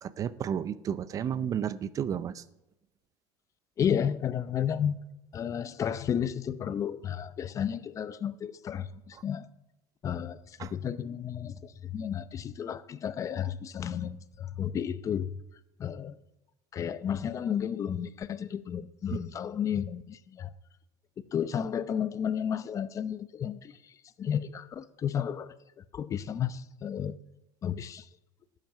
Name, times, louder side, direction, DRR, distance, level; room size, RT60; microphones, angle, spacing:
voice 1, 0.0-2.4 10.6-10.7 19.1-19.2, right 8 dB, 35° right, 0.5 m, -32 dB
voice 2, 3.8-5.0 5.3-9.5 10.0-15.4 15.8-16.2 16.7-20.5 21.3-23.8 24.2-27.2 27.6-28.1, left 8 dB, 30° left, 0.6 m, -32 dB
12.5 x 7.6 x 9.2 m
cardioid pair, 135°, 10 cm